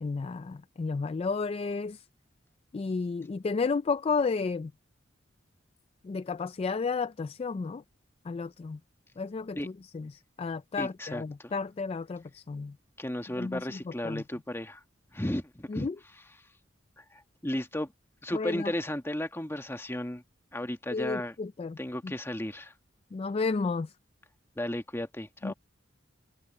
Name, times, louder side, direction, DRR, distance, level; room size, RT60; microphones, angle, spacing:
voice 1, 0.0-2.0 2.7-4.7 6.0-7.8 8.3-8.8 9.2-10.1 10.4-12.7 13.4-13.6 14.0-14.2 15.7-15.9 18.3-18.7 20.9-21.8 22.0-22.1 23.1-23.9 25.4-25.5, left 4 dB, 30° left, 0.3 m, -32 dB
voice 2, 10.8-11.5 13.0-14.8 15.1-15.9 16.1-16.2 17.0-17.9 18.2-20.2 20.5-21.3 21.8-22.7 24.6-25.5, left 1 dB, 15° left, 1.4 m, -34 dB
head